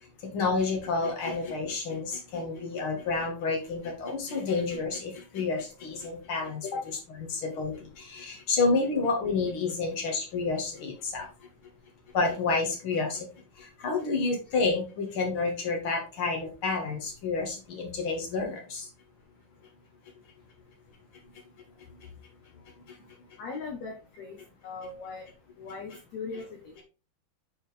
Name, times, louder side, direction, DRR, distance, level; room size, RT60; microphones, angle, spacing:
voice 1, 0.2-6.7 7.3-11.3 12.1-13.3 13.5-18.9 22.9-23.0, left 4 dB, 60° left, 1 dB, 1.4 m, -29 dB
voice 2, 23.4-24.4 24.6-25.3 25.6-26.8, left 4 dB, 85° left, 2 dB, 1.5 m, -38 dB
7.3 x 4.8 x 3.4 m, 0.32 s
omnidirectional pair, 4.9 m